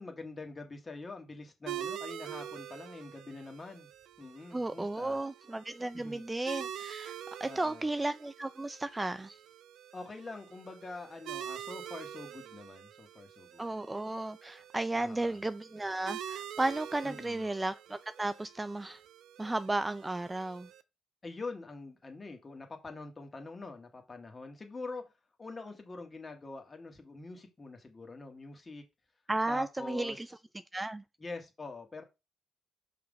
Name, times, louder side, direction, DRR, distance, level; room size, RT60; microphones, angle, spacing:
voice 1, 0.0-3.9 4.2-5.2 5.9-6.2 7.4-7.9 9.9-13.7 14.9-15.4 17.0-17.4 21.2-25.0 25.4-28.8 29.5-30.2 31.2-32.0, left 3 dB, 30° left, 1.8 m, -45 dB
sound 1, 1.7-20.8, right 10 dB, 80° right, 0.6 m, -46 dB
voice 2, 4.5-7.2 7.4-9.4 13.6-19.0 19.4-20.7 29.3-30.3 30.7-31.0, right 2 dB, 15° right, 0.4 m, -34 dB
5.6 x 3.8 x 5.2 m
cardioid pair, 90°, 0 cm